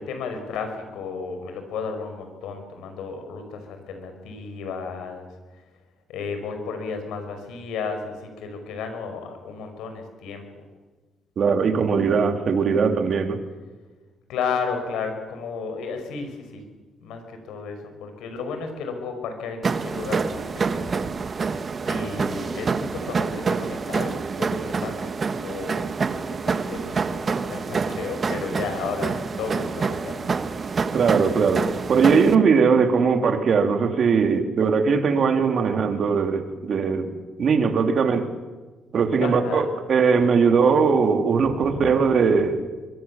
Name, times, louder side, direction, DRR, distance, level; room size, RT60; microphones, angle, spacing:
voice 1, 0.0-5.3 6.1-10.4 14.3-16.6 17.0-21.0 21.8-30.3 39.2-39.7 41.4-41.5, left 5 dB, 90° left, 6 dB, 5.5 m, -33 dB
voice 2, 11.4-13.4 30.9-37.1 37.4-38.3 38.9-42.6, right 5 dB, 55° right, 6 dB, 3.2 m, -20 dB
sound 1, 19.6-32.3, right 5 dB, 40° right, 1.5 m, -27 dB
25.5 x 23.5 x 7.3 m, 1.3 s
cardioid pair, 90°, 0 cm